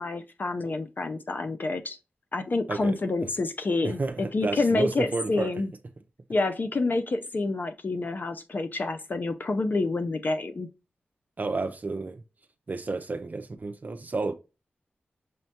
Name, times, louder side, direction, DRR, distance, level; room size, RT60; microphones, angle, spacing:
voice 1, 0.0-2.0 2.3-5.7 6.3-10.7, left 3 dB, 50° left, 0.5 m, -28 dB
voice 2, 3.8-5.5 11.4-12.2 12.7-14.3, right 3 dB, 45° right, 0.4 m, -31 dB
6.2 x 2.1 x 2.7 m
cardioid pair, 45°, 4 cm